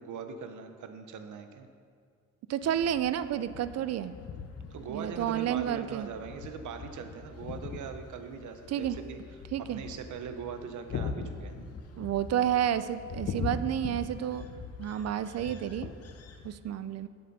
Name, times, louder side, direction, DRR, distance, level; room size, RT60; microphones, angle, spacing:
voice 1, 0.0-1.7 4.7-9.2 9.6-11.7 14.6-14.7, right 6 dB, 80° right, 7 dB, 0.8 m, -41 dB
voice 2, 2.5-4.1 4.9-6.1 8.7-9.0 9.5-9.8 12.0-14.5 14.8-15.9 16.4-17.1, right 10 dB, 60° right, 13 dB, 0.4 m, -30 dB
sound 1, 2.6-16.6, left 5 dB, 55° left, 0.8 m, -41 dB
7.9 x 7.7 x 5.4 m, 2.1 s
cardioid pair, 140°, 30 cm